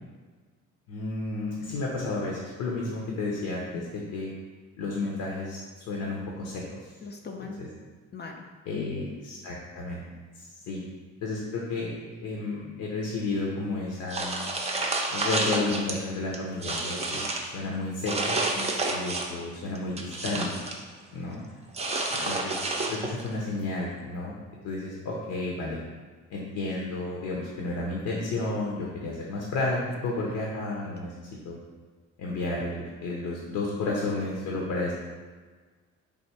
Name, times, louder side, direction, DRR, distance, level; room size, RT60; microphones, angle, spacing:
voice 1, 0.9-4.3 4.8-5.6 5.9-6.8 7.4-7.7 8.7-10.0 10.3-10.8 11.2-14.4 15.1-18.4 18.9-20.6 21.1-21.4 22.1-22.5 22.9-24.4 24.6-25.8 26.3-31.1 31.4-31.6 32.2-34.9, left 2 dB, 80° left, -3 dB, 0.7 m, -32 dB
voice 2, 7.0-7.6 8.1-8.4 8.7-9.2 18.5-18.9 21.3-21.4 31.1-31.4, left 4 dB, 35° left, 3 dB, 0.4 m, -41 dB
sound 1, 14.1-16.0 16.3-17.5 18.1-19.4 19.7-20.8 21.7-23.3, right 2 dB, 20° right, 0.5 m, -29 dB
3.4 x 2.4 x 4.2 m, 1.4 s
cardioid pair, 90°, 30 cm